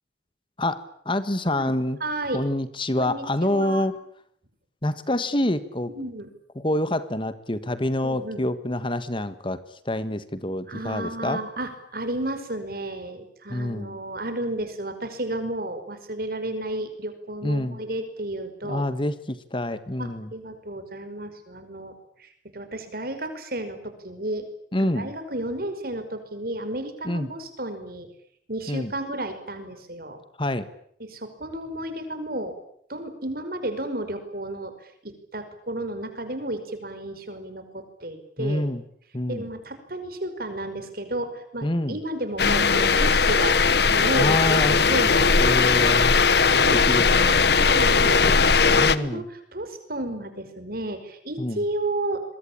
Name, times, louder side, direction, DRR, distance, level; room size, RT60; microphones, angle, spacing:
voice 1, 0.6-2.0 2.3-3.9 4.8-5.9 6.5-9.6 9.8-11.4 13.5-14.0 17.4-17.8 18.6-20.3 24.7-25.1 27.0-27.3 28.7-28.9 30.4-30.7 38.4-38.8 39.1-39.4 41.6-42.0 44.1-44.8 45.4-46.2 46.7-48.1 48.7-49.2 51.4-51.6, left 1 dB, 30° left, 13 dB, 1.5 m, -27 dB
voice 2, 2.0-2.4 3.0-3.9 5.9-6.3 8.0-8.5 10.7-18.8 20.0-24.5 24.8-28.1 28.5-30.2 31.0-32.6 32.9-38.6 39.3-43.6 43.9-45.5 46.6-47.1 47.5-52.2, right 1 dB, 55° right, 9 dB, 5.3 m, -32 dB
sound 1, 42.4-49.0, left 5 dB, 65° left, 1.2 m, -19 dB
26.5 x 22.5 x 8.8 m, 0.68 s
head